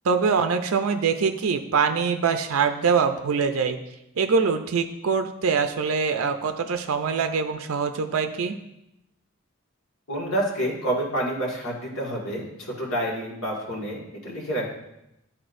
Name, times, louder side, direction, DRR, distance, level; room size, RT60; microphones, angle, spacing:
voice 1, 0.0-3.8 4.2-8.6, right 5 dB, 80° right, 7 dB, 0.5 m, -23 dB
voice 2, 10.1-14.7, right 1 dB, 80° left, -3 dB, 1.8 m, -28 dB
12.0 x 4.3 x 2.6 m, 0.86 s
head